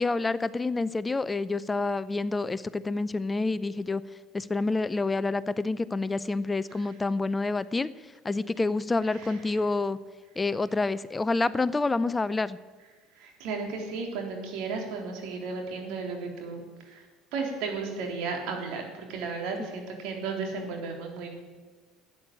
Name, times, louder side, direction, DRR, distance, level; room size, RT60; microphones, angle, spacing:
voice 1, 0.0-4.0 4.3-7.9 8.2-10.0 10.4-12.6, left 3 dB, 20° left, 16 dB, 0.6 m, -28 dB
voice 2, 9.0-9.6 13.1-21.3, right 4 dB, 70° right, 2 dB, 3.5 m, -35 dB
13.0 x 9.3 x 8.7 m, 1.3 s
hypercardioid pair, 80°, 0 cm